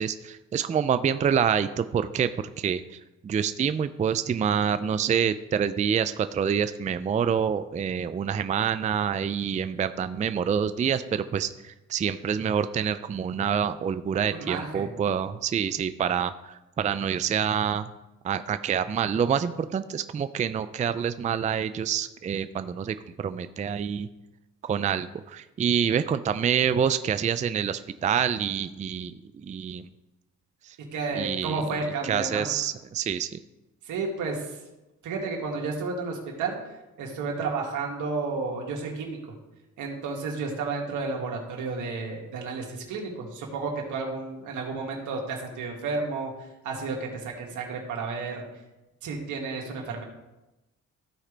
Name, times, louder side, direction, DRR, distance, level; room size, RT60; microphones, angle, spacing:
voice 1, 0.0-17.9 18.2-24.1 24.6-29.9 30.6-30.8 31.1-31.6 32.0-33.4, right 8 dB, 25° right, 12 dB, 0.4 m, -27 dB
voice 2, 14.3-14.9 30.9-32.5 33.8-34.6 35.0-36.5 37.0-39.2 39.8-46.3 46.6-48.4 49.0-50.0, right 4 dB, 80° right, 0 dB, 2.0 m, -32 dB
14.5 x 4.9 x 3.3 m, 1.0 s
cardioid pair, 90°, 30 cm